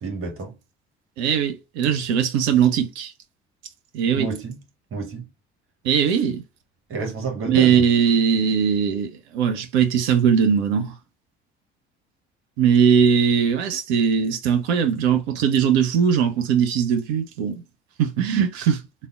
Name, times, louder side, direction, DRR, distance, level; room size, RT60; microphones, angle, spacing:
voice 1, 0.0-0.6 4.1-4.6 4.9-5.3 6.9-7.8, right 4 dB, 40° right, 1.2 m, -29 dB
voice 2, 1.2-3.1 3.9-4.3 5.8-6.4 7.5-10.9 12.6-17.6 18.0-18.8, right 7 dB, 70° right, 0.6 m, -20 dB
3.4 x 2.2 x 2.4 m
figure-of-eight pair, 55°, 33 cm